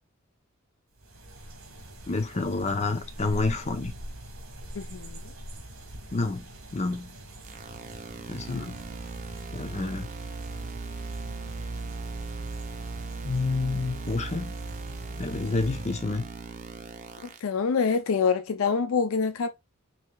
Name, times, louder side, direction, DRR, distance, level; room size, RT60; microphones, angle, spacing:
sound 1, 0.9-16.0, right 1 dB, 75° right, 1.5 m, -43 dB
voice 1, 2.1-3.9 6.1-6.5 6.7-7.1 8.3-8.8 9.5-10.1 13.2-14.5 15.2-16.3, left 3 dB, 35° left, 0.7 m, -29 dB
voice 2, 4.8-5.2 17.4-19.5, left 5 dB, 75° left, 0.4 m, -25 dB
sound 2, 7.4-17.4, right 3 dB, 40° right, 0.7 m, -38 dB
4.7 x 3.0 x 2.3 m
head